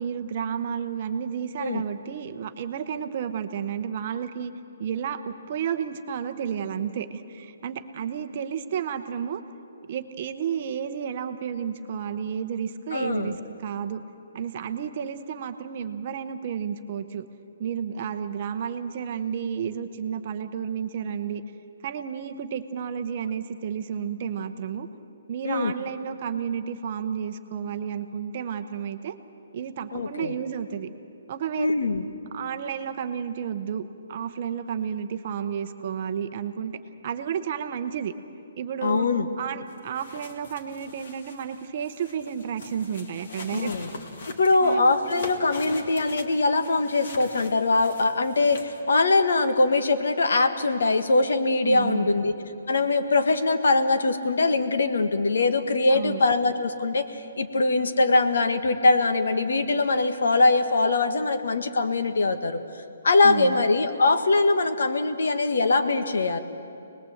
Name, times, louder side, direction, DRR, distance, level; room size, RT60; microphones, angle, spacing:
voice 1, 0.0-4.5 4.8-9.4 9.9-14.0 14.3-17.2 17.6-21.4 21.8-24.9 25.3-29.1 29.5-30.9 31.3-31.7 32.3-33.8 34.1-38.1 38.6-39.1 39.4-43.7 44.5-44.8 51.6-52.2 55.9-56.2 63.2-63.6, right 8 dB, 30° right, 9 dB, 0.8 m, -31 dB
voice 2, 12.9-13.3 25.4-25.7 29.9-30.3 31.6-32.0 38.8-39.3 43.5-43.9 44.3-52.3 52.7-62.6 63.0-66.4, left 3 dB, 75° left, 8 dB, 1.6 m, -22 dB
sound 1, 39.7-48.8, left 3 dB, 40° left, 1.9 m, -43 dB
25.0 x 20.0 x 7.9 m, 2.5 s
hypercardioid pair, 180°, 0 cm